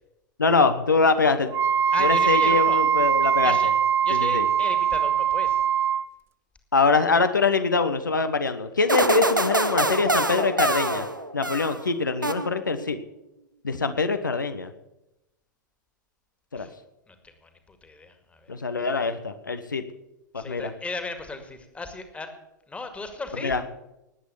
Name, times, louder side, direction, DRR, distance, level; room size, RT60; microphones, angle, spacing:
voice 1, 0.4-1.5 2.0-3.6 4.1-4.5 6.7-11.1 11.3-13.0 13.6-14.7 16.5-16.7 18.5-19.8 20.3-20.7 23.4-23.6, left 4 dB, 75° left, 9 dB, 1.1 m, -23 dB
Wind instrument woodwind instrument, 1.5-6.0, right 8 dB, 25° right, 0.6 m, -22 dB
voice 2, 1.9-2.8 3.4-3.7 4.0-5.6 16.6-16.7 17.1-17.2 17.4-18.5 20.4-22.3 22.7-23.5, left 3 dB, 10° left, 7 dB, 2.1 m, -36 dB
sound 1, 8.9-11.9 12.2-12.9, right 2 dB, 85° right, 1.1 m, -25 dB
19.5 x 8.2 x 7.1 m, 0.91 s
figure-of-eight pair, 95°, 10 cm